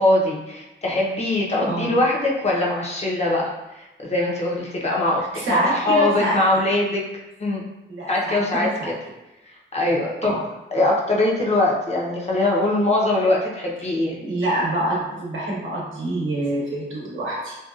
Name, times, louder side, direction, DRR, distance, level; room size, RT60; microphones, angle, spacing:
voice 1, 0.0-7.0 7.4-7.6 8.1-8.9 9.7-10.3 10.7-14.2, left 1 dB, 35° left, -3 dB, 0.6 m, -22 dB
voice 2, 1.6-2.0 5.3-6.4 7.9-8.9 10.2-10.4 14.2-17.6, right 1 dB, 85° right, -4 dB, 0.8 m, -26 dB
2.6 x 2.2 x 2.4 m, 0.97 s
cardioid pair, 70°, 20 cm